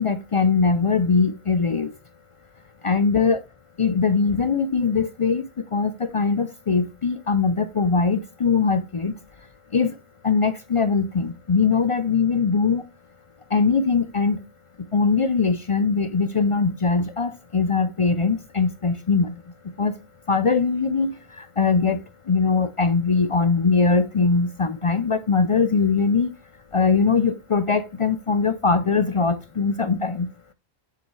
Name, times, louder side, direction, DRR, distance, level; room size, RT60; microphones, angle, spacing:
voice 1, 0.0-1.9 2.8-3.4 3.8-9.1 9.7-10.0 10.2-12.8 13.5-14.4 14.9-19.3 19.8-19.9 20.3-26.3 26.7-30.3, left 4 dB, 45° left, 0.4 m, -21 dB
8.0 x 6.4 x 3.1 m
omnidirectional pair, 1.1 m